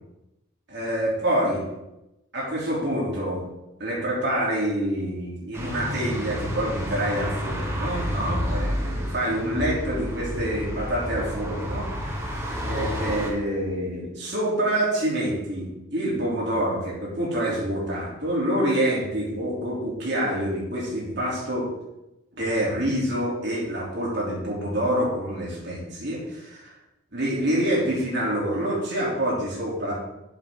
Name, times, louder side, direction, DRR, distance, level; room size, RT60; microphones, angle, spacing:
voice 1, 0.7-1.6 2.3-3.4 3.8-12.4 12.7-21.7 22.3-26.7 27.1-29.9, right 1 dB, 55° right, -5 dB, 3.1 m, -27 dB
sound 1, 5.5-13.3, equal, 10° right, 1.1 m, -30 dB
7.8 x 7.3 x 3.8 m, 0.92 s
head